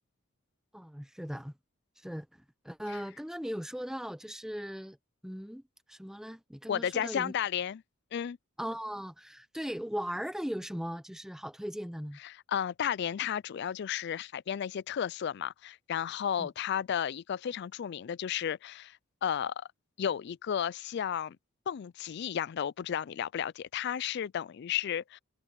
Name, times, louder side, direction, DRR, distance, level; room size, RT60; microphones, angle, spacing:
voice 1, 0.7-1.5 2.0-2.3 2.6-5.0 5.2-5.6 5.9-7.3 8.6-12.2 16.4-16.5, equal, ahead, 0.9 m, -38 dB
voice 2, 6.7-7.8 8.1-8.4 12.2-19.0 19.2-19.5 20.0-21.4 21.7-25.2, left 9 dB, 55° left, 0.3 m, -33 dB
head